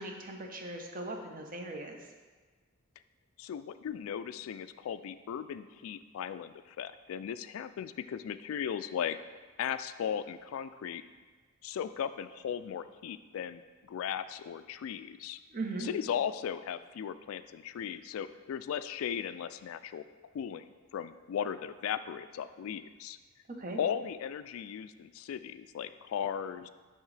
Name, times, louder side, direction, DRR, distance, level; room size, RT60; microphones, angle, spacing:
voice 1, 0.0-2.0 15.5-15.9 23.6-23.8, right 2 dB, 40° right, 3 dB, 0.7 m, -39 dB
voice 2, 3.4-9.2 9.6-11.0 11.6-15.4 15.8-20.0 20.3-20.6 20.9-23.2 23.8-26.7, left 8 dB, 80° left, 13 dB, 0.3 m, -37 dB
10.0 x 3.6 x 3.3 m, 1.4 s
head